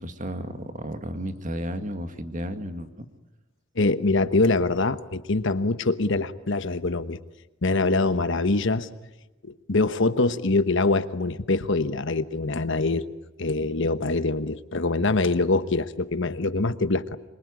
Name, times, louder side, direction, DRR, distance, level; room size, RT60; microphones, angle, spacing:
voice 1, 0.0-3.0, equal, 40° right, 8 dB, 2.0 m, -33 dB
voice 2, 3.8-7.2 7.6-8.9 9.4-13.0 13.4-17.2, left 3 dB, 60° left, 12 dB, 1.2 m, -24 dB
25.5 x 23.0 x 9.7 m, 1.0 s
head